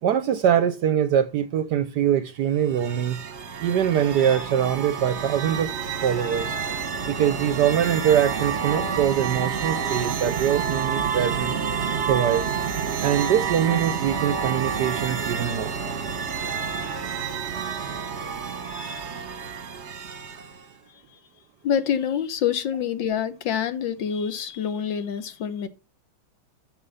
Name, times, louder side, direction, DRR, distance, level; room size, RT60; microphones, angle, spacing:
voice 1, 0.0-3.2 3.6-5.8 6.0-6.5 7.1-11.5 12.1-12.4 13.0-15.7, right 9 dB, 65° right, 1.1 m, -23 dB
sound 1, 2.5-20.7, right 6 dB, 40° right, 1.1 m, -29 dB
voice 2, 21.6-25.7, left 8 dB, 65° left, 1.6 m, -26 dB
13.0 x 4.9 x 5.5 m
omnidirectional pair, 2.3 m